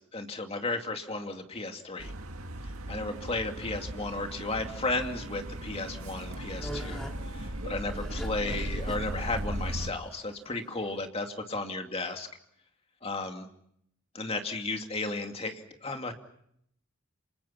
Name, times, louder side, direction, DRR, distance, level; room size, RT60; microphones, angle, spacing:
voice 1, 0.0-2.1 2.9-12.3 13.0-13.5 14.1-16.1, left 2 dB, 30° left, 5 dB, 2.6 m, -34 dB
sound 1, 2.0-9.9, right 1 dB, 85° right, 2.0 m, -37 dB
sound 2, 6.0-11.1, right 1 dB, ahead, 2.6 m, -43 dB
29.0 x 26.5 x 5.9 m, 0.72 s
head